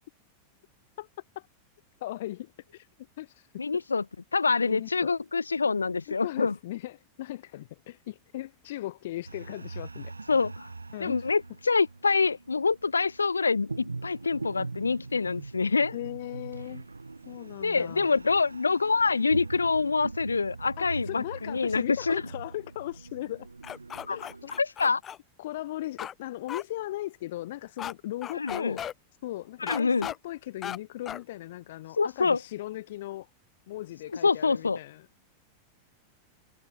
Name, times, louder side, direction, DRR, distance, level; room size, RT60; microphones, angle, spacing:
voice 1, 2.0-2.9 3.2-3.8 4.6-5.1 5.6-5.7 6.1-10.2 10.9-11.3 15.9-16.9 17.2-18.1 20.8-23.5 24.1-24.6 25.4-28.8 29.2-33.3 33.7-35.1, left 15 dB, 55° left, 3.1 m, -38 dB
voice 2, 3.6-4.0 4.3-6.5 10.3-10.7 11.0-15.9 17.6-22.2 24.1-24.2 24.6-25.0 28.4-28.8 29.6-30.1 32.0-32.4 34.2-34.8, left 4 dB, 75° left, 1.3 m, -26 dB
sound 1, 9.2-24.6, right 3 dB, 80° right, 4.7 m, -42 dB
sound 2, 23.6-25.2 26.0-26.1 26.5-26.6 27.8-27.9 28.2-28.9 29.7-30.2 30.6-30.8 31.1-31.2, left 9 dB, 25° left, 5.1 m, -36 dB
figure-of-eight pair, 90°, 0 cm